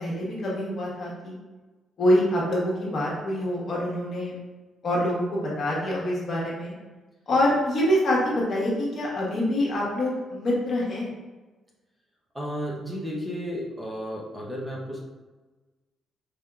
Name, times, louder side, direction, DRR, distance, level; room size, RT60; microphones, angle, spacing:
voice 1, 0.0-1.4 2.0-4.3 4.8-6.7 7.3-11.1, left 1 dB, 55° left, -5 dB, 1.3 m, -25 dB
voice 2, 12.3-15.0, equal, 10° right, -4 dB, 0.8 m, -33 dB
5.1 x 2.7 x 2.3 m, 1.2 s
cardioid pair, 90°, 0 cm